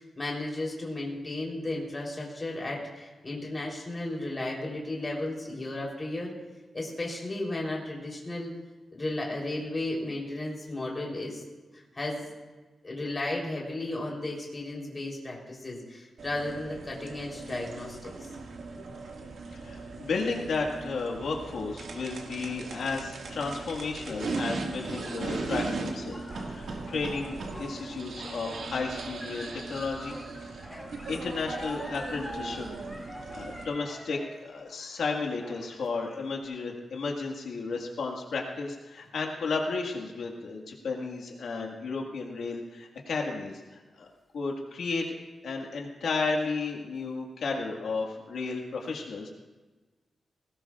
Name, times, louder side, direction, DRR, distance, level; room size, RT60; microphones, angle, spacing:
voice 1, 0.0-6.3 6.7-8.5 8.9-11.4 11.7-12.3 12.8-18.1, left 2 dB, 25° left, -2 dB, 3.7 m, -34 dB
sound 1, 16.2-33.6, right 3 dB, 80° right, 2.0 m, -38 dB
voice 2, 19.5-30.2 31.1-32.6 33.3-44.1 44.3-45.0 45.4-49.3, left 4 dB, 85° left, 0 dB, 1.8 m, -33 dB
sound 2, 24.7-36.3, equal, 5° left, 2.5 m, -46 dB
20.0 x 18.5 x 2.5 m, 1.2 s
wide cardioid pair, 155°, 0 cm